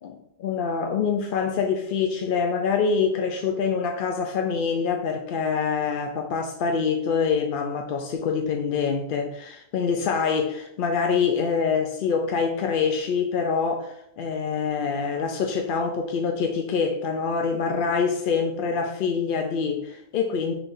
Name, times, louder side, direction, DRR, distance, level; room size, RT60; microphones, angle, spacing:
voice 1, 0.0-20.5, left 5 dB, 60° left, 3 dB, 0.6 m, -25 dB
5.7 x 3.4 x 2.6 m, 0.74 s
omnidirectional pair, 1.1 m